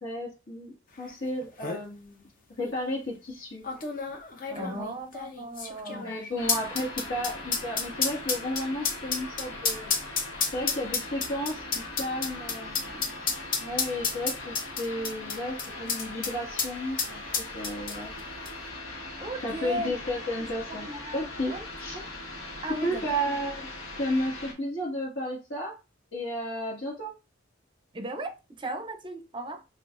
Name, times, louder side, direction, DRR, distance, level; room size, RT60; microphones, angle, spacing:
voice 1, 0.0-2.3 2.6-3.6 4.5-4.9 5.9-9.9 10.5-11.6 12.0-13.0 13.6-17.2 17.5-18.1 19.4-20.9 21.1-21.5 21.8-22.0 22.7-23.7 24.0-25.7 26.1-27.2, equal, 60° left, 1.6 m, -33 dB
sound 1, 1.1-1.2 1.4-1.8 2.6-2.7 3.6-16.3 16.6-16.7 17.0-18.2 18.5-18.6, left 5 dB, 45° left, 0.7 m, -30 dB
voice 2, 4.5-6.2 19.2-19.9 20.7-21.2 21.5-21.7 22.6-23.3 27.9-29.6, right 1 dB, 25° right, 0.5 m, -36 dB
sound 2, 6.4-24.5, left 2 dB, 85° left, 1.3 m, -40 dB
6.1 x 2.5 x 2.5 m
head